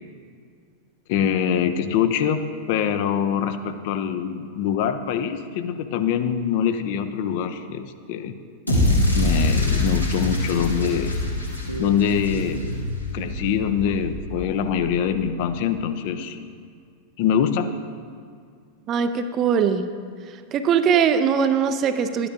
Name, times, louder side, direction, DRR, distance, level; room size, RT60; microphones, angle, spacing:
voice 1, 1.1-8.4 9.1-11.2 11.8-12.7 13.1-16.4 17.2-17.7, left 8 dB, 50° left, 9 dB, 0.5 m, -24 dB
sound 1, 8.7-12.9, left 1 dB, 85° left, 1.7 m, -23 dB
sound 2, 11.0-15.6, left 1 dB, 85° right, 0.7 m, -33 dB
voice 2, 18.9-19.8 20.5-22.3, right 7 dB, 30° right, 10 dB, 0.5 m, -21 dB
12.0 x 9.6 x 2.5 m, 2.1 s
figure-of-eight pair, 90°, 0 cm